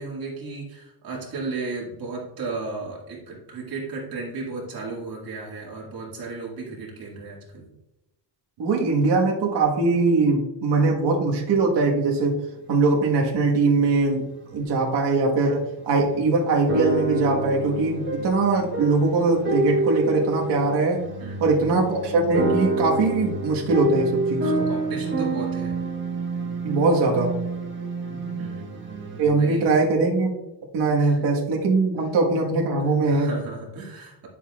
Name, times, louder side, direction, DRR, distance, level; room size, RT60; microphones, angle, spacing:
voice 1, 0.0-7.7 21.2-21.6 24.4-25.7 28.1-28.8 29.1-29.6 31.0-31.2 33.1-34.3, right 3 dB, 55° right, -3 dB, 2.1 m, -34 dB
voice 2, 8.6-12.4 12.7-14.3 14.5-21.0 21.4-24.7 26.6-27.3 29.2-30.3 30.7-33.3, right 3 dB, 70° right, -1 dB, 1.6 m, -21 dB
sound 1, 15.4-15.5 16.1-29.2, right 2 dB, 25° right, 1.3 m, -28 dB
10.0 x 6.9 x 2.4 m, 0.95 s
cardioid pair, 170°, 43 cm